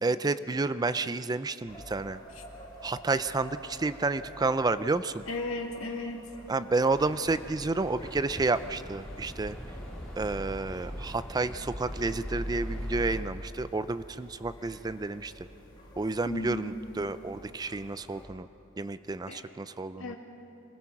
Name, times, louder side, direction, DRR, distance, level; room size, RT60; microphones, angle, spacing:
voice 1, 0.0-2.2 2.8-5.2 6.5-9.5 10.2-15.3 16.0-18.5 18.8-20.1, right 3 dB, 20° right, 13 dB, 0.4 m, -30 dB
sound 1, 1.7-18.2, equal, 20° left, 4.1 m, -50 dB
voice 2, 5.3-6.2 16.3-16.7 19.3-19.4 20.0-20.2, left 2 dB, 75° left, 2 dB, 2.3 m, -35 dB
sound 2, 6.9-13.2, equal, 5° left, 4.1 m, -40 dB
25.5 x 20.5 x 5.9 m, 2.8 s
head